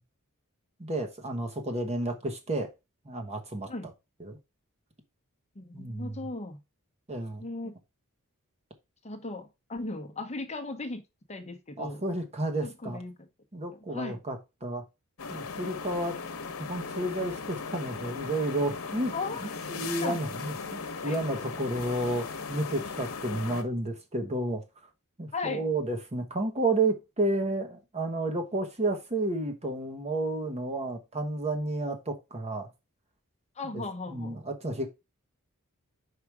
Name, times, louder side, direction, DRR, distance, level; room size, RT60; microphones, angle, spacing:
voice 1, 0.8-2.7 3.0-3.9 4.2-4.4 5.7-6.2 7.1-7.5 11.8-13.0 13.5-14.8 15.3-16.2 16.6-19.1 19.4-24.6 25.2-32.7 33.7-33.8 34.1-34.9, right 2 dB, 30° right, 1.1 m, -31 dB
voice 2, 5.6-6.6 7.4-7.7 9.0-11.0 11.3-12.0 12.6-13.1 13.9-14.2 19.1-19.5 20.0-20.2 21.0-21.2 25.3-25.6 33.6-34.4, left 3 dB, 30° left, 0.9 m, -36 dB
sound 1, 15.2-23.6, left 4 dB, 65° left, 1.1 m, -38 dB
4.9 x 4.8 x 4.7 m
head